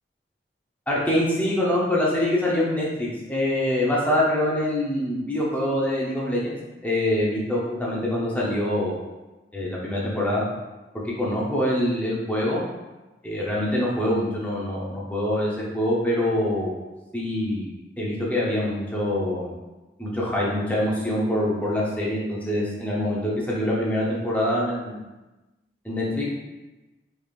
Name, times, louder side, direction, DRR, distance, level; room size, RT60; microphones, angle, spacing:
voice 1, 0.9-6.6 6.8-9.0 9.5-10.4 11.0-12.6 13.2-16.7 17.1-17.7 18.0-19.5 20.0-25.0 25.8-26.2, left 1 dB, 10° left, -6 dB, 0.7 m, -24 dB
3.4 x 3.4 x 2.4 m, 1.1 s
head